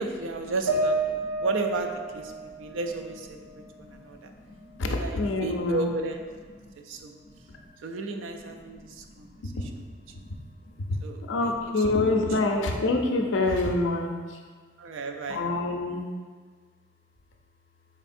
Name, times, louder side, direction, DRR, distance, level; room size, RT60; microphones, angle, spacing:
voice 1, 0.0-4.3 4.8-6.2 6.8-7.1 7.8-9.3 11.0-11.6 14.8-15.4, right 3 dB, 90° right, 5 dB, 0.4 m, -33 dB
sound 1, 0.7-4.1 4.5-5.5, right 2 dB, 65° right, 0.8 m, -32 dB
voice 2, 2.3-2.8 3.6-5.9 6.6-6.7 7.2-7.7 8.6-9.8 10.1-14.4 15.3-16.1, left 2 dB, 75° left, 2 dB, 0.5 m, -29 dB
4.3 x 3.4 x 2.5 m, 1.5 s
head